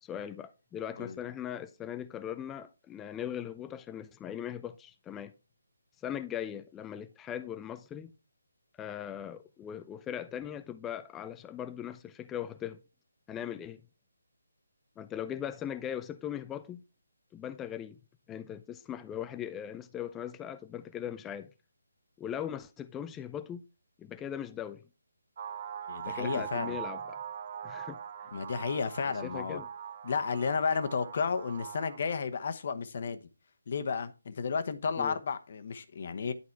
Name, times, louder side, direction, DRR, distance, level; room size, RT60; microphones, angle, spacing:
voice 1, 0.0-5.3 6.0-8.1 8.8-12.8 13.3-13.8 15.0-16.8 17.3-18.0 18.3-21.5 22.2-23.6 24.0-24.8 26.0-27.2 27.6-28.0 29.0-29.7 35.0-35.2, left 10 dB, 10° left, 0.4 m, -39 dB
sound 1, 25.4-32.0, right 8 dB, 50° right, 1.1 m, -41 dB
voice 2, 25.9-26.8 28.3-29.6 30.0-33.2 33.7-36.3, left 5 dB, 50° left, 1.0 m, -32 dB
11.0 x 4.1 x 4.6 m
figure-of-eight pair, 150°, 0 cm